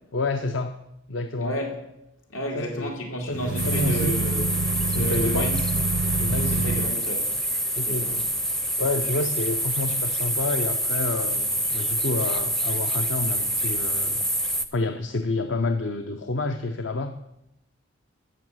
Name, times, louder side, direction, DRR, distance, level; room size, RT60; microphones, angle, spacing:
voice 1, 0.1-0.8 1.1-1.6 2.5-2.9 3.2-4.1 4.9-5.5 6.2-6.9 7.7-8.2 8.8-14.2 14.5-17.1, left 2 dB, 65° left, 0.7 m, -29 dB
voice 2, 1.4-1.8 2.3-4.5 4.9-5.5 6.5-7.2 7.9-8.1, equal, 80° left, 2.7 m, -31 dB
sound 1, 3.3-7.0, right 3 dB, 65° right, 0.5 m, -27 dB
sound 2, 3.6-14.7, right 1 dB, ahead, 0.5 m, -27 dB
13.5 x 5.7 x 7.8 m
head